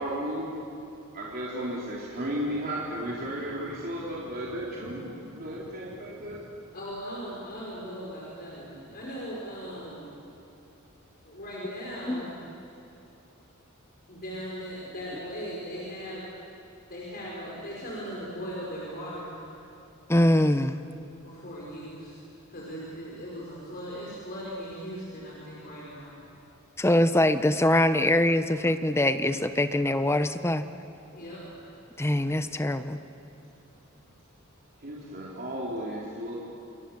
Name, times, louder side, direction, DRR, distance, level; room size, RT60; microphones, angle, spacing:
voice 1, 0.0-0.6 1.1-6.4 34.8-36.4, equal, 50° right, -5 dB, 4.1 m, -34 dB
voice 2, 6.7-10.1 11.2-12.4 14.1-16.2 16.9-19.4 21.2-22.2 22.5-26.2 31.1-31.7, equal, 50° left, -5 dB, 5.4 m, -38 dB
voice 3, 20.1-20.8 26.8-30.6 32.0-33.0, left 1 dB, 10° left, 10 dB, 0.8 m, -23 dB
28.0 x 28.0 x 7.3 m, 2.8 s
head